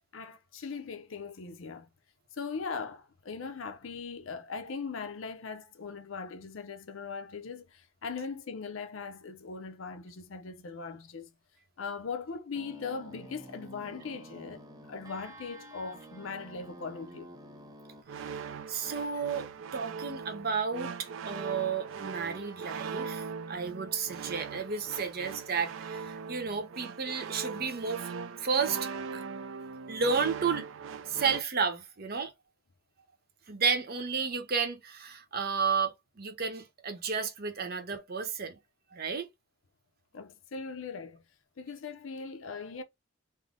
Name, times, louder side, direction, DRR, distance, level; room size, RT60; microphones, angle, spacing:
voice 1, 0.1-1.9 2.3-11.3 11.8-14.6 14.9-17.3 40.1-41.2 41.6-42.8, left 5 dB, 75° left, 0.6 m, -40 dB
sound 1, 12.5-18.0, right 1 dB, 20° right, 0.5 m, -50 dB
voice 2, 18.1-19.5 19.7-28.1 28.4-29.2 29.9-30.6 31.0-32.3 33.5-38.6 38.9-39.3, right 5 dB, 50° right, 0.8 m, -32 dB
sound 2, 18.1-31.4, right 5 dB, 70° right, 0.4 m, -40 dB
3.7 x 2.1 x 3.5 m
head